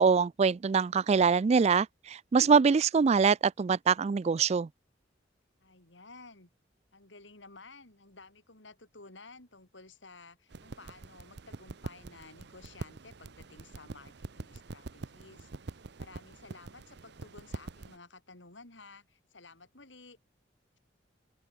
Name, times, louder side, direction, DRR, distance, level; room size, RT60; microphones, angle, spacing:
voice 1, 0.0-4.7, right 5 dB, 35° right, 0.3 m, -24 dB
voice 2, 5.6-6.5 6.9-20.2, left 3 dB, 75° left, 5.3 m, -53 dB
sound 1, 10.5-18.0, right 3 dB, 60° right, 0.8 m, -45 dB
open air
head